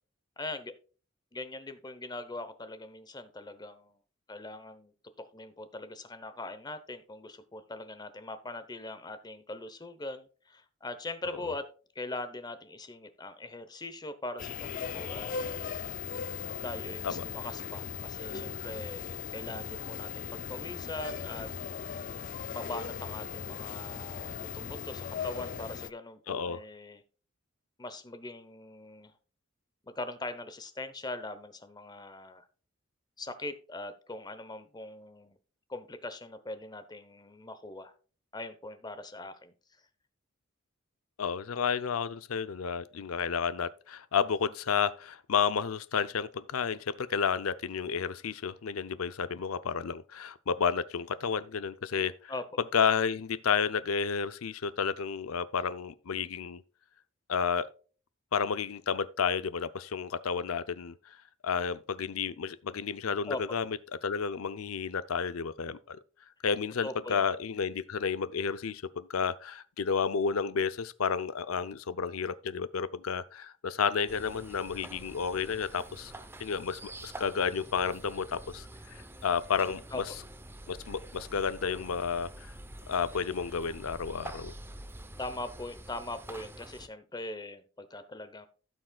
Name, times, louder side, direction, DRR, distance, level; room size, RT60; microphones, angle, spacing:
voice 1, 0.4-0.7 1.3-4.0 4.3-4.9 5.3-11.6 11.9-15.8 16.6-21.5 22.5-27.0 27.8-29.1 29.8-32.5 33.2-35.4 35.7-37.9 38.3-39.5 52.3-52.4 63.3-63.6 66.8-67.3 79.9-80.0 85.2-88.5, left 2 dB, 20° left, 0.9 m, -41 dB
sound 1, 14.4-25.9, left 7 dB, 40° left, 0.4 m, -38 dB
voice 2, 26.3-26.6 41.2-52.3 52.7-56.6 57.3-57.7 58.3-61.2 61.4-66.0 66.4-76.1 76.4-80.0 80.7-82.5 82.9-84.5, left 6 dB, 90° left, 0.6 m, -31 dB
sound 2, 74.1-86.9, right 1 dB, 10° right, 0.7 m, -47 dB
16.0 x 6.3 x 2.3 m
head